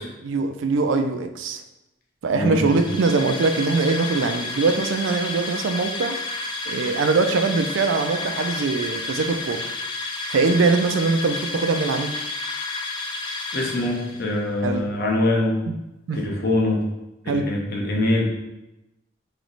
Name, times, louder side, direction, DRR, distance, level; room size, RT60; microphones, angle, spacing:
voice 1, 0.2-1.6 2.2-6.2 6.7-9.6 10.3-12.2 14.6-14.9 15.7-15.8 16.1-16.2 17.3-17.5, right 4 dB, 85° right, 7 dB, 0.4 m, -22 dB
voice 2, 2.3-2.8 13.5-15.6 16.1-16.8 17.2-18.2, left 1 dB, 55° left, -1 dB, 0.8 m, -23 dB
sound 1, 2.5-14.4, left 3 dB, 25° left, 0.4 m, -31 dB
3.2 x 3.0 x 3.9 m, 0.94 s
head